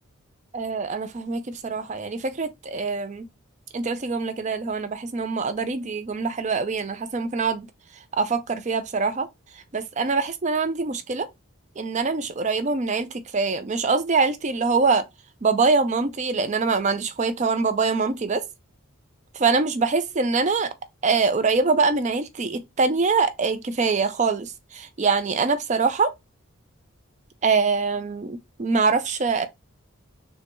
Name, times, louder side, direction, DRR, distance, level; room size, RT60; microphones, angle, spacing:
voice 1, 0.5-3.3 3.7-7.7 8.1-9.3 9.7-11.3 11.8-15.0 15.4-18.4 19.3-20.7 21.0-26.1 27.4-29.5, right 4 dB, 35° right, 0.4 m, -24 dB
6.3 x 2.2 x 2.9 m
head